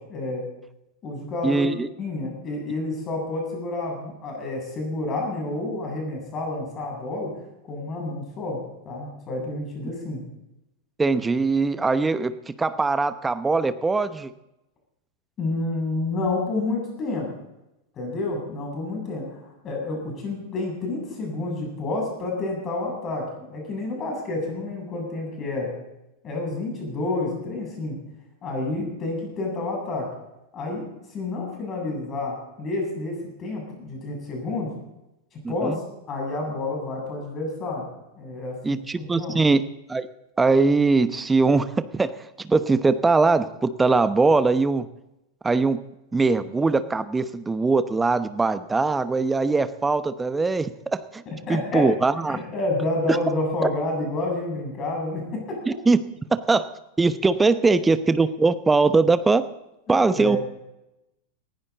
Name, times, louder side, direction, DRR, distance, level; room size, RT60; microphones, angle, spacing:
voice 1, 0.1-0.4 1.0-1.7 2.0-7.3 7.7-10.2 15.4-17.3 18.0-25.7 26.2-28.0 28.4-30.1 30.5-30.8 31.1-34.7 35.3-35.8 36.1-37.9 38.2-39.4 51.5-51.8 52.3-55.6 60.2-60.4, left 2 dB, 25° left, 0 dB, 7.9 m, -29 dB
voice 2, 1.4-1.9 11.0-14.3 35.4-35.8 38.6-39.6 39.9-40.1 40.4-42.1 42.4-44.9 45.4-45.8 46.1-51.2 51.5-52.4 53.1-53.2 55.7-56.0 56.5-56.6 57.0-59.5 59.9-60.4, right 3 dB, 10° right, 13 dB, 0.9 m, -21 dB
19.0 x 16.0 x 4.1 m, 0.92 s
figure-of-eight pair, 90°, 0 cm